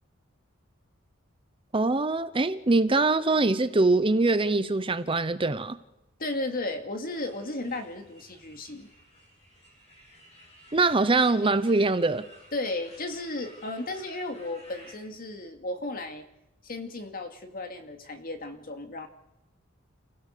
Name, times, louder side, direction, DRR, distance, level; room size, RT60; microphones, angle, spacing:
voice 1, 1.7-5.8 10.7-12.2, right 3 dB, 25° right, 0.8 m, -23 dB
voice 2, 6.2-8.9 12.5-16.2 16.6-19.1, left 2 dB, 45° left, 2.4 m, -34 dB
sound 1, 7.1-14.9, equal, 30° left, 7.6 m, -54 dB
30.0 x 16.0 x 6.8 m
head